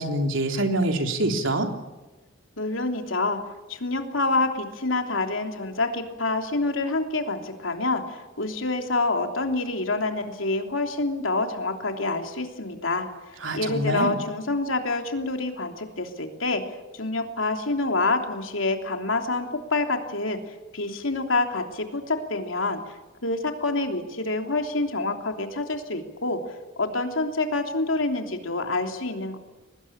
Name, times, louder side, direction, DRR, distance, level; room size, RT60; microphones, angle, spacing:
voice 1, 0.0-1.7 13.4-14.2, right 1 dB, 80° right, 4 dB, 3.4 m, -25 dB
voice 2, 2.6-3.4 3.7-13.1 13.5-22.8 23.2-26.4 26.8-29.4, left 2 dB, 90° left, 5 dB, 3.2 m, -27 dB
23.5 x 20.0 x 8.8 m, 1.1 s
head